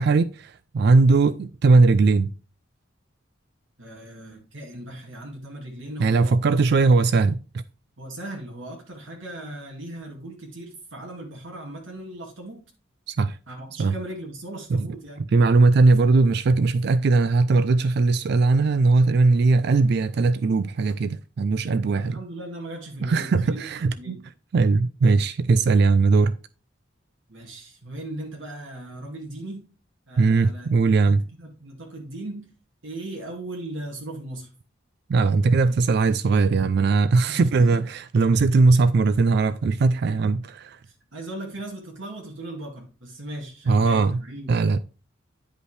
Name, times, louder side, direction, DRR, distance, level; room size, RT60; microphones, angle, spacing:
voice 1, 0.0-2.3 6.0-7.4 13.1-13.4 13.8-13.9 14.7-14.9 15.3-22.2 23.0-24.2 24.5-26.3 30.2-31.2 35.1-40.8 43.7-44.2 44.5-44.8, right 3 dB, 55° right, 0.3 m, -19 dB
voice 2, 3.8-6.6 8.0-12.6 13.5-15.2 21.8-23.7 24.0-24.2 27.3-29.6 30.1-30.7 31.1-32.5 32.8-34.5 37.3-37.9 40.9-44.6, right 1 dB, 75° right, 2.1 m, -38 dB
10.0 x 5.3 x 3.2 m
head